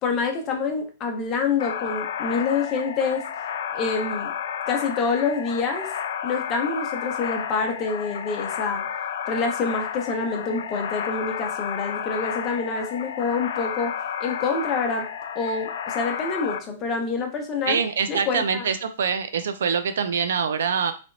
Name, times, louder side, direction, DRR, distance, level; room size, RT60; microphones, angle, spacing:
voice 1, 0.0-3.3 3.7-4.3 4.7-5.9 6.2-8.8 9.3-13.9 14.2-15.1 15.3-17.8 18.1-18.7, left 4 dB, 25° left, 3 dB, 0.6 m, -27 dB
sound 1, 1.6-16.6, left 8 dB, 65° left, 0.4 m, -31 dB
voice 2, 17.7-20.9, right 6 dB, 80° right, 10 dB, 0.5 m, -24 dB
3.3 x 2.9 x 2.6 m, 0.34 s
hypercardioid pair, 160°, 0 cm